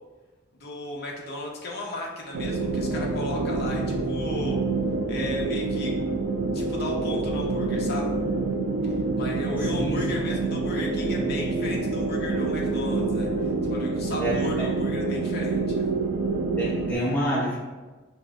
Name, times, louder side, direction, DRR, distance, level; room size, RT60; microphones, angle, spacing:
voice 1, 0.6-4.6 5.1-5.9 6.5-8.1 9.2-15.9, left 2 dB, 50° left, -2 dB, 0.7 m, -35 dB
sound 1, 2.3-16.9, right 3 dB, 70° right, 0.4 m, -27 dB
voice 2, 9.7-10.2 14.2-14.7 16.6-17.6, right 1 dB, 10° left, -6 dB, 0.8 m, -28 dB
5.0 x 2.6 x 2.3 m, 1.3 s
head